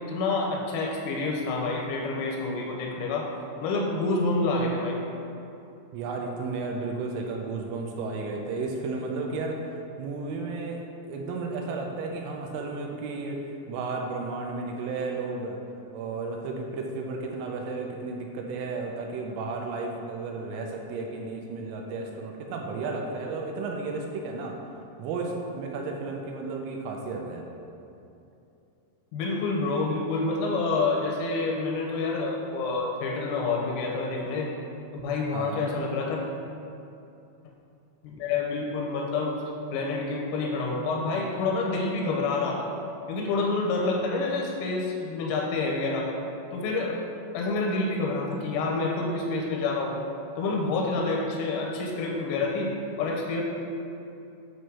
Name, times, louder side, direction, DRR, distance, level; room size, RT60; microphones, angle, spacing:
voice 1, 0.0-3.3 3.6-5.0 29.1-34.5 34.9-36.3 38.0-39.4 39.7-42.7 43.1-46.1 46.5-47.0 47.3-50.0 50.4-52.7 53.0-53.4, left 3 dB, 85° left, -1 dB, 3.8 m, -28 dB
voice 2, 5.9-9.6 10.0-13.4 13.7-15.6 15.9-24.6 25.0-27.5 35.3-35.7, right 3 dB, 80° right, 1 dB, 3.2 m, -33 dB
9.1 x 3.1 x 6.2 m, 2.7 s
omnidirectional pair, 5.9 m